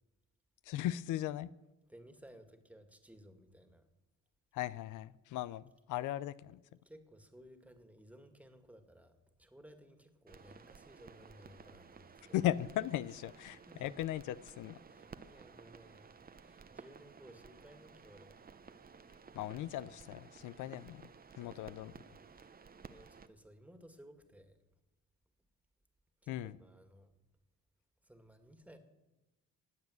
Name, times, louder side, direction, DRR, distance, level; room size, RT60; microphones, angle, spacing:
voice 1, 0.6-1.5 4.5-6.6 12.3-14.8 19.3-21.0 21.4-21.9 26.3-26.6, left 13 dB, 85° left, 0.5 m, -37 dB
voice 2, 1.9-3.9 6.8-12.4 13.7-13.9 14.9-18.4 21.4-21.8 22.9-24.8 26.2-27.1 28.0-28.8, equal, 5° right, 2.0 m, -58 dB
sound 1, 10.3-23.3, right 5 dB, 30° right, 0.9 m, -56 dB
19.0 x 7.4 x 7.9 m
cardioid pair, 90°, 30 cm